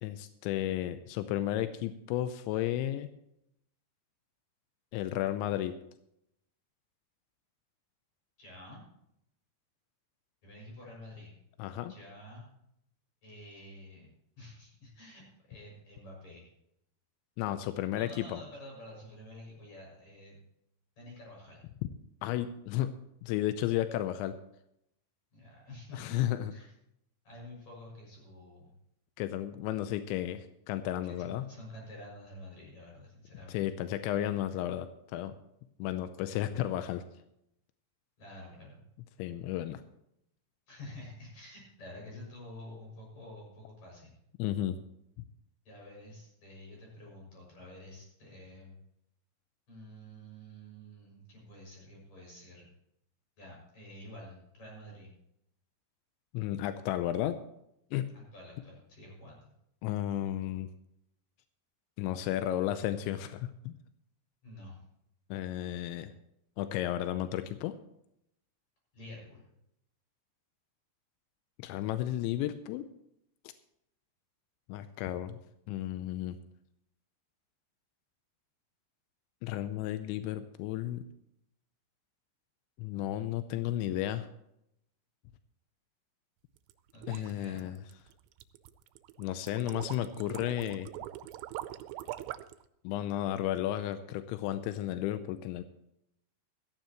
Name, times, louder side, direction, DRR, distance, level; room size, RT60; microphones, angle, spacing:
voice 1, 0.0-3.1 4.9-5.8 11.6-11.9 17.4-18.4 22.2-24.4 25.9-26.5 29.2-31.5 33.5-35.3 35.8-37.0 39.2-39.8 44.4-44.8 56.3-57.4 57.9-58.1 59.8-60.7 62.0-63.7 65.3-66.1 66.6-67.8 71.6-72.9 74.7-75.4 75.7-76.4 79.4-81.1 82.8-84.3 87.1-87.8 89.2-90.9 92.8-95.6, left 12 dB, 90° left, 10 dB, 3.0 m, -33 dB
voice 2, 8.4-8.8 10.4-11.3 11.9-12.4 13.2-16.5 18.0-20.4 21.0-21.7 25.3-26.2 26.5-26.7 27.2-28.7 31.0-33.6 38.2-38.8 40.7-44.2 45.7-48.8 49.7-52.7 53.4-55.1 58.1-59.5 64.4-64.8 68.9-69.5 86.9-87.7, left 1 dB, 40° left, -2 dB, 7.7 m, -49 dB
sound 1, 86.6-92.6, right 14 dB, 85° right, 2.9 m, -43 dB
16.0 x 14.5 x 3.0 m, 0.78 s
omnidirectional pair, 5.2 m